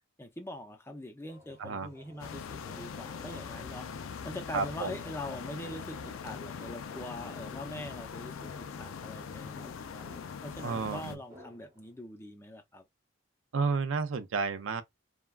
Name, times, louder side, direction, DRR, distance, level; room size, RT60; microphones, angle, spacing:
voice 1, 0.2-10.0 10.4-12.8, left 1 dB, 10° left, 0.5 m, -43 dB
sound 1, 1.3-12.1, equal, 15° right, 1.0 m, -54 dB
voice 2, 1.6-1.9 4.5-5.0 10.6-11.2 13.5-14.8, right 4 dB, 75° right, 0.5 m, -31 dB
sound 2, 2.2-11.2, left 6 dB, 85° left, 0.4 m, -42 dB
3.3 x 2.2 x 2.3 m
head